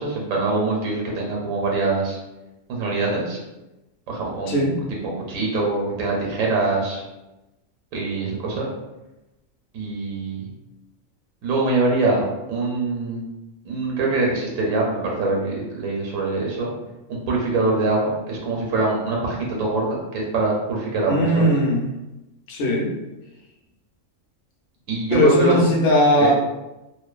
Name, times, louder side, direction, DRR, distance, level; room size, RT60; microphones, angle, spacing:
voice 1, 0.0-2.2 2.7-3.4 4.1-4.7 5.0-7.0 7.9-8.7 9.7-10.5 11.4-13.3 13.6-16.7 17.1-21.5 24.9-25.6 26.2-26.3, right 3 dB, 85° right, -2 dB, 1.0 m, -23 dB
voice 2, 4.5-4.8 21.1-21.9 22.5-22.9 25.1-26.3, left 1 dB, 55° left, -2 dB, 0.5 m, -19 dB
2.5 x 2.1 x 2.3 m, 0.98 s
omnidirectional pair, 1.3 m